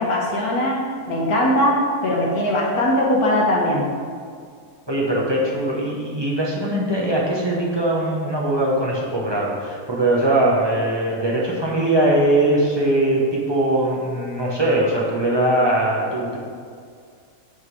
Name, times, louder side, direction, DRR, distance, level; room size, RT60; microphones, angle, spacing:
voice 1, 0.0-3.9, left 1 dB, 85° left, -3 dB, 1.8 m, -20 dB
voice 2, 4.9-16.4, right 1 dB, 20° right, -5 dB, 0.9 m, -21 dB
6.3 x 3.7 x 6.2 m, 2.2 s
omnidirectional pair, 1.5 m